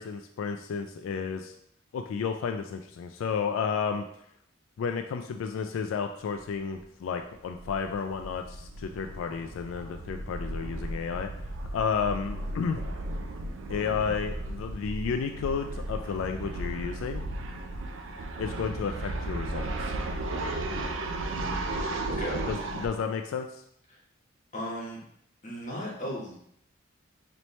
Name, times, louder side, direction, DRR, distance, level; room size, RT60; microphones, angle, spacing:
voice 1, 0.0-1.5 1.9-4.1 4.8-11.3 11.7-12.8 13.7-17.2 18.4-20.0 22.5-23.6, left 6 dB, 90° left, 6 dB, 0.3 m, -32 dB
sound 1, 6.3-6.5 6.7-6.8 7.2-22.9, right 2 dB, 70° right, 0.5 m, -35 dB
voice 2, 22.1-22.4 24.5-25.0 25.4-26.4, equal, 40° left, -3 dB, 1.1 m, -35 dB
4.1 x 3.1 x 3.1 m, 0.72 s
head